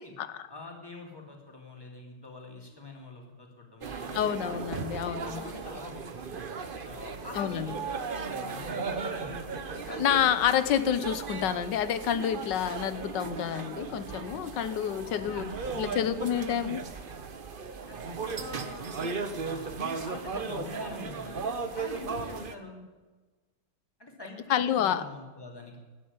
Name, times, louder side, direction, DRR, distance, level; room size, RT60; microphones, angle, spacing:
voice 1, 0.5-4.4 4.9-6.4 6.8-7.8 8.2-8.8 9.1-9.4 15.2-16.2 17.8-19.7 20.0-21.4 21.7-22.8 24.0-25.8, left 2 dB, 10° left, 1 dB, 2.7 m, -45 dB
sound 1, 3.8-22.5, right 4 dB, 40° right, 0.8 m, -36 dB
voice 2, 4.1-5.4 7.3-7.8 9.9-15.5 15.8-16.8 24.5-25.0, left 9 dB, 70° left, 14 dB, 1.4 m, -28 dB
12.0 x 10.0 x 9.6 m, 1.3 s
omnidirectional pair, 2.1 m